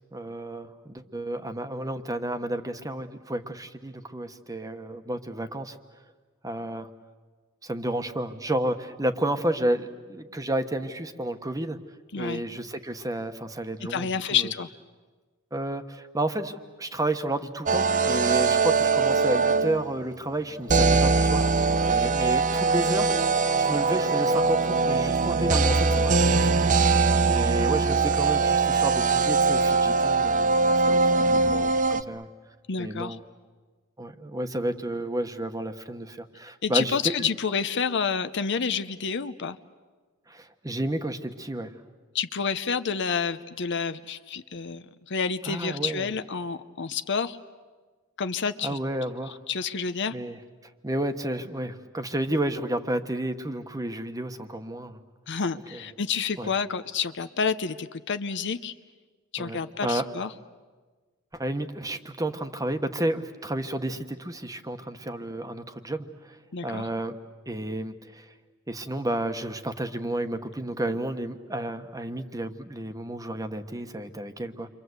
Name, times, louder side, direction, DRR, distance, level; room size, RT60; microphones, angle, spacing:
voice 1, 0.1-5.8 6.4-6.9 7.6-11.8 12.2-14.5 15.5-23.1 23.6-32.3 32.8-33.2 34.0-37.3 40.3-41.7 45.5-46.1 48.6-49.4 50.1-50.3 50.8-55.0 55.7-55.8 56.4-56.5 59.4-60.0 61.3-66.4 66.6-67.2 67.5-68.3 68.7-74.7, right 1 dB, 15° right, 8 dB, 1.2 m, -31 dB
voice 2, 13.8-14.7 32.7-33.2 36.6-39.6 42.1-47.4 48.2-48.8 49.5-50.2 55.3-58.7 59.3-60.3 66.5-66.9, left 6 dB, 60° left, 11 dB, 0.8 m, -29 dB
sound 1, 17.7-19.9 20.7-32.0, right 4 dB, 40° right, 0.8 m, -22 dB
29.0 x 24.5 x 8.1 m, 1.4 s
head